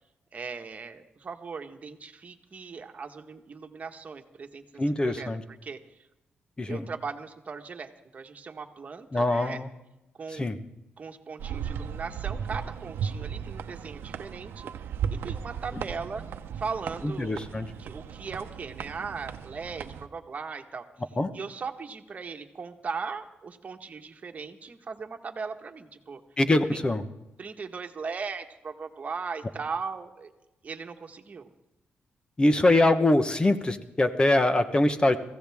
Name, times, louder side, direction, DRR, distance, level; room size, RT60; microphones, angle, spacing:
voice 1, 0.3-5.3 5.6-5.8 6.7-9.6 10.2-10.5 11.0-16.2 16.5-17.4 17.8-20.9 21.3-26.2 26.7-26.8 27.4-30.3 30.6-31.5, right 5 dB, 40° right, 5 dB, 1.5 m, -38 dB
voice 2, 4.8-5.4 6.6-6.8 9.1-9.7 10.3-10.6 17.0-17.7 21.2-21.3 26.4-27.0 32.4-35.2, left 2 dB, 25° left, 10 dB, 1.2 m, -23 dB
sound 1, 11.4-20.1, right 8 dB, 85° right, 0.8 m, -36 dB
23.0 x 15.5 x 3.6 m, 0.96 s
cardioid pair, 105°, 4 cm